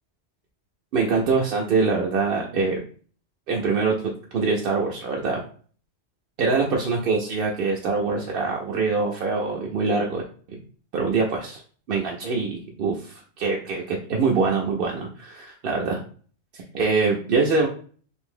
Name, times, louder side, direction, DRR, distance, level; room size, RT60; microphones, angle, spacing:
voice 1, 0.9-2.8 3.5-5.4 6.4-10.2 10.5-10.6 10.9-11.6 11.9-16.0 16.5-17.7, right 4 dB, 60° right, -1 dB, 0.7 m, -24 dB
2.7 x 2.6 x 3.6 m, 0.43 s
omnidirectional pair, 1.2 m